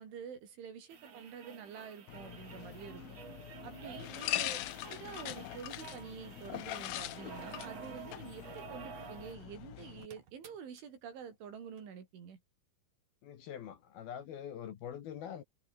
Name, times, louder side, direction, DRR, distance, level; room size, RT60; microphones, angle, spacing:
voice 1, 0.0-3.2 3.6-4.6 4.9-12.4, right 7 dB, 75° right, 6.7 m, -48 dB
sound 1, 0.9-9.4 9.7-9.8 10.0-10.8 11.8-11.9, right 7 dB, 40° right, 2.9 m, -51 dB
sound 2, 2.1-10.1, left 15 dB, 80° left, 2.1 m, -42 dB
voice 2, 13.2-15.4, left 9 dB, 60° left, 3.1 m, -44 dB
omnidirectional pair, 5.6 m